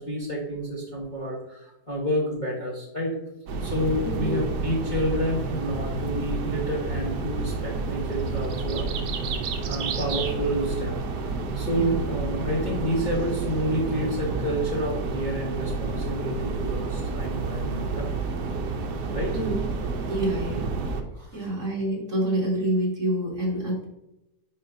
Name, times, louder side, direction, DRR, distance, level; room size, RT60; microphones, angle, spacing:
voice 1, 0.0-3.2 3.6-8.9 9.7-18.1 19.1-19.4 21.1-21.5, equal, 30° left, -6 dB, 1.2 m, -29 dB
sound 1, 3.5-21.0, right 4 dB, 75° right, 1.3 m, -30 dB
voice 2, 4.0-4.4 11.7-12.0 19.3-19.6 20.1-20.7 21.3-23.8, right 1 dB, 45° right, -4 dB, 2.4 m, -27 dB
9.9 x 4.3 x 2.7 m, 0.90 s
omnidirectional pair, 1.8 m